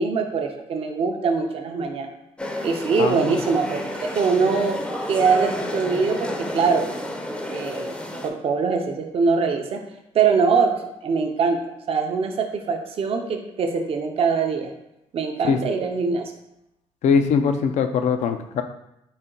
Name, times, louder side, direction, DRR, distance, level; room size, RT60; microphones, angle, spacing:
voice 1, 0.0-2.1 2.6-4.8 5.1-6.9 7.5-7.9 8.2-9.8 10.1-10.7 11.0-11.6 11.9-14.7 15.1-16.2, right 5 dB, 50° right, 4 dB, 0.5 m, -22 dB
sound 1, 2.4-8.3, left 1 dB, 10° left, 0.5 m, -31 dB
voice 2, 3.0-3.3 15.5-15.6 17.0-18.6, left 6 dB, 75° left, 8 dB, 0.4 m, -21 dB
4.0 x 2.1 x 3.7 m, 0.84 s
cardioid pair, 85°, 12 cm